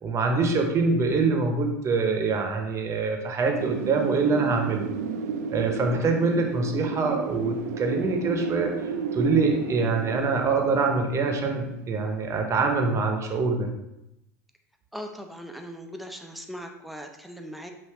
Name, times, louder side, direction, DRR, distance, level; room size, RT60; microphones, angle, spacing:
voice 1, 0.0-4.9 5.5-8.7 9.1-13.7, right 4 dB, 35° right, 3 dB, 0.9 m, -24 dB
Wind, 3.6-12.3, right 6 dB, 75° right, 0.4 m, -33 dB
voice 2, 14.9-17.7, equal, ahead, 4 dB, 0.6 m, -39 dB
5.6 x 2.6 x 3.2 m, 0.87 s
hypercardioid pair, 95°, 9 cm